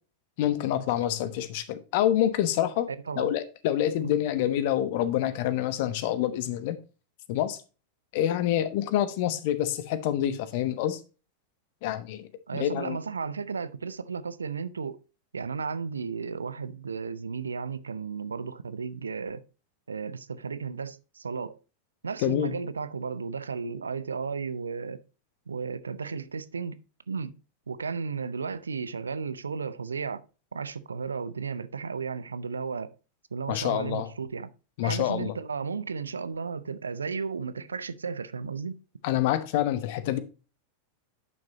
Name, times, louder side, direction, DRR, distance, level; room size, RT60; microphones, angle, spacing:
voice 1, 0.4-2.9 3.2-6.8 7.3-7.6 8.1-11.0 11.8-13.0 22.2-22.5 33.5-34.1 34.8-35.3 39.0-40.2, left 12 dB, 50° left, 1.0 m, -27 dB
voice 2, 2.9-3.3 4.0-4.2 12.5-15.0 15.3-19.4 19.9-21.6 22.0-25.0 25.5-26.8 27.1-27.3 27.7-30.2 30.5-32.9 33.3-34.5 34.8-38.8, right 5 dB, 75° right, 0.5 m, -34 dB
10.5 x 6.0 x 2.8 m
figure-of-eight pair, 90°, 0 cm